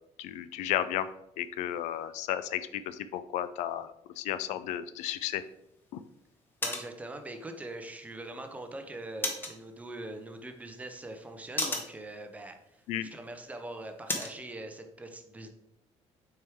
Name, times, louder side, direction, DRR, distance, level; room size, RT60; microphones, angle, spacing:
voice 1, 0.2-1.1 1.4-3.9 4.2-5.4 5.9-6.0 12.9-13.1, left 11 dB, 90° left, 14 dB, 0.4 m, -33 dB
sound 1, 5.0-14.4, left 2 dB, 15° left, 0.9 m, -41 dB
voice 2, 6.6-15.5, right 2 dB, 10° right, 6 dB, 0.5 m, -42 dB
6.3 x 4.5 x 3.5 m, 0.82 s
cardioid pair, 165°, 12 cm